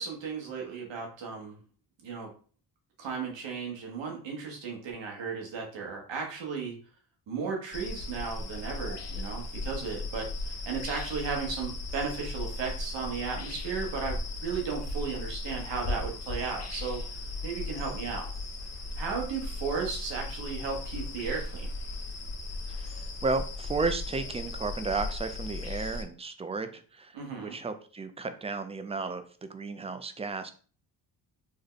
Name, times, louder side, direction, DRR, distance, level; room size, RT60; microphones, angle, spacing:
voice 1, 0.0-1.6 2.0-2.3 3.0-6.7 7.3-17.0 17.4-18.3 19.0-21.7 27.1-27.6, right 5 dB, 90° right, 0 dB, 1.1 m, -35 dB
sound 1, 7.7-26.0, left 2 dB, 35° left, 0.7 m, -37 dB
voice 2, 22.7-30.5, right 4 dB, 15° right, 9 dB, 0.4 m, -33 dB
3.4 x 2.1 x 3.7 m, 0.41 s
cardioid pair, 75°, 43 cm